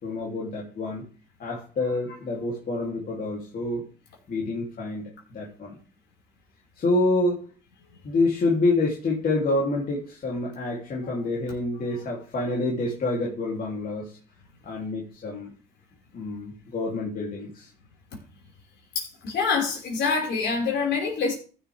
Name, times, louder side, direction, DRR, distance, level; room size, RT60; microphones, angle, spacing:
voice 1, 0.0-1.0 1.4-3.8 4.3-5.8 6.8-7.4 8.0-14.2 14.6-15.5 16.1-17.7, left 2 dB, 50° left, 3.3 m, -27 dB
voice 2, 19.0-21.3, left 5 dB, 65° left, 5.3 m, -26 dB
15.0 x 7.3 x 3.6 m
supercardioid pair, 75°, 20 cm